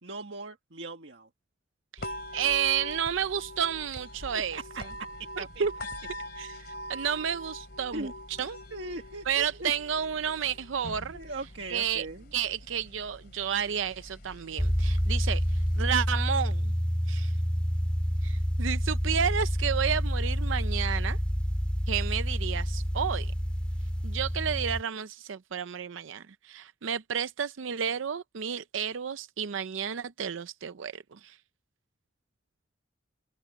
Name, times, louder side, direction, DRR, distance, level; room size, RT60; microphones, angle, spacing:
voice 1, 0.0-1.3 2.4-2.5 4.5-4.8 5.4-5.7 7.9-8.1 8.7-9.7 11.1-12.2, right 2 dB, 70° right, 1.7 m, -39 dB
voice 2, 1.9-4.6 5.4-5.7 6.4-6.6 6.9-8.6 9.3-11.2 11.7-12.1 12.3-16.7 17.1-17.3 18.2-21.2 21.9-23.3 24.0-31.4, right 8 dB, 85° right, 0.5 m, -31 dB
sound 1, 2.0-16.0, equal, 55° left, 2.8 m, -43 dB
sound 2, 14.6-24.8, equal, 5° left, 2.5 m, -28 dB
open air
head